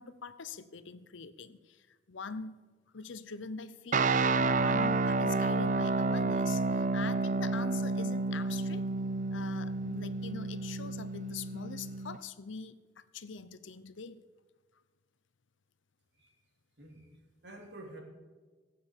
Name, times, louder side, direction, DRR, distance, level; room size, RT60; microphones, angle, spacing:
voice 1, 0.0-2.6 2.9-8.9 9.3-14.2, left 5 dB, 75° left, 0.7 m, -44 dB
sound 1, 3.9-12.2, right 3 dB, 40° right, 0.5 m, -30 dB
voice 2, 16.8-17.1 17.4-18.0, right 1 dB, 60° right, 3.1 m, -49 dB
16.5 x 8.6 x 7.3 m
head